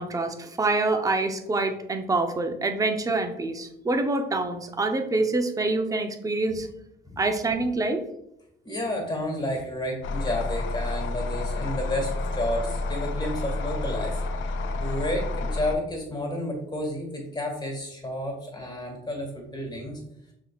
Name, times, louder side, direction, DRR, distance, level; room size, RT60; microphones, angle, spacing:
voice 1, 0.0-6.7 7.2-8.0, right 2 dB, 15° right, 6 dB, 0.6 m, -26 dB
voice 2, 8.6-20.0, left 1 dB, 20° left, 1 dB, 1.7 m, -31 dB
sound 1, 10.0-15.8, left 2 dB, 75° left, 0.5 m, -30 dB
6.3 x 3.5 x 2.3 m, 0.79 s
cardioid pair, 90°, 20 cm